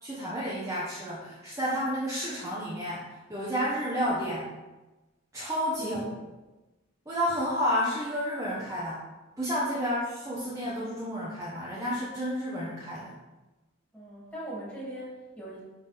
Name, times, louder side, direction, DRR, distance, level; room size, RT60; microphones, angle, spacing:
voice 1, 0.0-4.5 5.3-6.0 7.1-9.0 9.4-13.1, equal, 15° right, -8 dB, 1.2 m, -31 dB
voice 2, 5.8-6.2 9.8-10.0 13.9-15.6, right 1 dB, 10° left, -7 dB, 2.7 m, -40 dB
11.0 x 4.2 x 3.5 m, 1.1 s
head